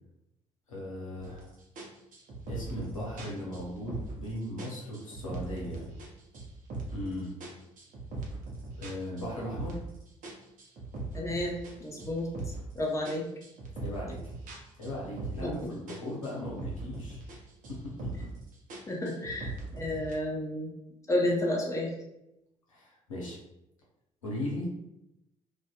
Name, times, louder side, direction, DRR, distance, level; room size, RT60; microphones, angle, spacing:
voice 1, 0.7-1.5 2.5-5.8 6.8-7.3 8.8-9.8 13.8-14.2 14.8-17.2 17.7-18.1 22.7-23.4 24.2-24.7, left 1 dB, 90° left, -5 dB, 0.6 m, -37 dB
sound 1, 1.2-1.4 1.8-4.3 4.6-6.1 6.3-7.1 7.4-9.9 10.2-12.7 13.0-15.6 15.9-17.4 17.6-18.4 18.7-20.1, right 3 dB, 50° right, 0.8 m, -40 dB
voice 2, 11.1-12.3 12.7-13.3 15.4-15.7 18.9-20.7 21.1-21.9, left 1 dB, 20° left, -1 dB, 0.8 m, -31 dB
2.5 x 2.3 x 2.3 m, 0.86 s
hypercardioid pair, 50°, 17 cm